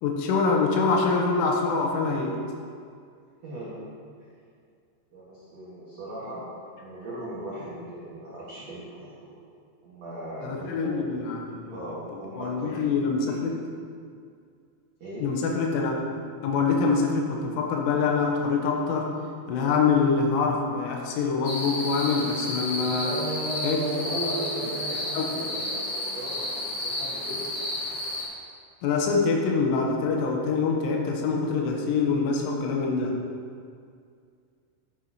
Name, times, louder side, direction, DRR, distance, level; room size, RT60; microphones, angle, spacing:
voice 1, 0.0-2.4 10.4-11.8 12.1-13.6 15.2-16.0 16.4-19.2 19.5-23.2 23.6-23.8 25.1-25.2 28.8-33.2, left 4 dB, 90° left, 1 dB, 3.3 m, -25 dB
voice 2, 3.4-3.8 5.1-6.4 6.8-9.1 9.8-11.0 11.7-13.4 15.0-15.3 23.0-27.5, right 1 dB, 65° right, -9 dB, 1.6 m, -36 dB
sound 1, 21.4-28.2, left 1 dB, 60° left, 1.8 m, -32 dB
9.9 x 9.6 x 2.9 m, 2.2 s
omnidirectional pair, 5.6 m